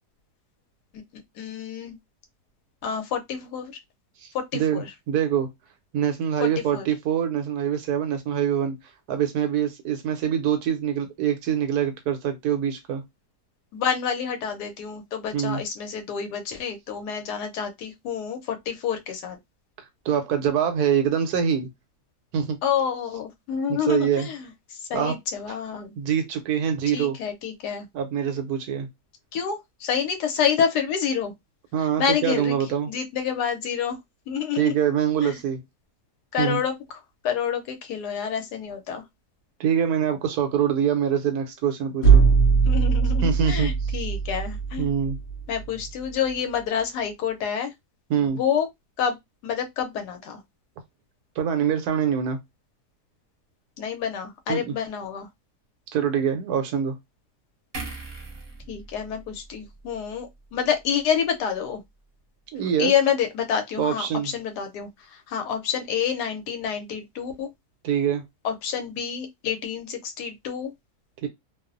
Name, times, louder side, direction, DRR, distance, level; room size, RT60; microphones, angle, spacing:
voice 1, 0.9-2.0 2.8-3.7 4.3-4.9 6.4-6.9 13.7-19.4 22.6-25.9 26.9-27.9 29.3-31.3 32.0-32.5 32.9-34.0 34.3-34.7 35.2-35.4 36.3-36.7 37.2-39.0 42.6-44.9 45.5-47.7 48.2-48.7 49.0-49.2 49.4-50.4 53.8-55.3 58.7-61.8 62.8-67.5 68.4-70.7, left 7 dB, 80° left, 1.2 m, -28 dB
voice 2, 4.2-5.5 5.9-8.8 9.1-13.0 15.3-15.6 20.0-21.7 22.3-22.6 23.7-24.3 24.9-25.1 26.0-27.2 27.9-28.9 31.7-32.9 34.5-35.6 36.4-36.6 39.6-42.2 43.2-43.7 44.8-45.2 48.1-48.4 51.4-52.4 54.5-54.7 55.9-57.0 62.5-62.9 63.8-64.3 67.8-68.2 71.2-71.3, right 8 dB, 75° right, 1.1 m, -24 dB
sound 1, 42.0-45.9, right 5 dB, 55° left, 0.9 m, -20 dB
sound 2, 57.7-61.1 61.5-61.6, right 3 dB, 45° right, 0.8 m, -41 dB
2.8 x 2.0 x 2.4 m
omnidirectional pair, 1.7 m